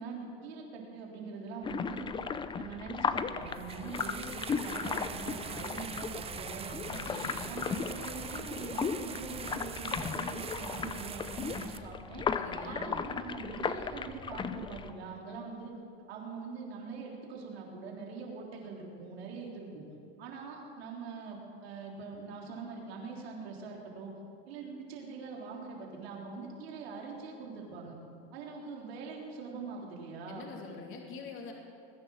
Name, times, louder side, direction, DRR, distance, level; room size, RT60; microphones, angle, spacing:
voice 1, 0.0-2.2 2.6-7.1 7.5-12.3 12.6-15.7 16.1-19.8 20.2-24.1 24.5-27.9 28.3-30.5, right 4 dB, 85° right, -1 dB, 3.6 m, -43 dB
sound 1, 1.6-14.9, left 6 dB, 15° left, 0.5 m, -36 dB
sound 2, 3.4-11.8, right 7 dB, 20° right, 0.7 m, -43 dB
voice 2, 7.0-7.6 12.3-12.9 15.3-15.4 30.3-31.5, left 4 dB, 40° left, 0 dB, 2.8 m, -45 dB
21.0 x 10.5 x 6.5 m, 2.5 s
supercardioid pair, 125°, 30 cm